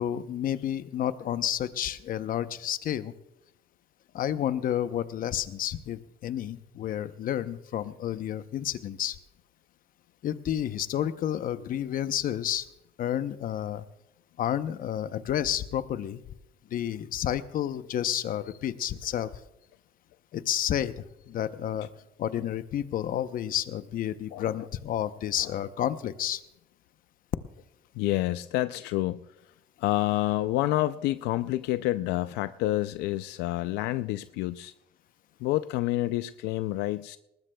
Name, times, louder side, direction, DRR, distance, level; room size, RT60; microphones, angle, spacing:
voice 1, 0.0-3.1 4.1-9.2 10.2-12.7 13.0-13.8 14.4-16.2 16.7-19.3 20.3-20.9 21.3-21.9 22.2-26.4, left 10 dB, 55° left, 0.7 m, -30 dB
voice 2, 24.3-24.7 25.4-25.5 28.0-29.2 29.8-34.7 35.4-37.2, left 16 dB, 90° left, 0.4 m, -28 dB
20.0 x 19.5 x 2.3 m
cardioid pair, 110°, 17 cm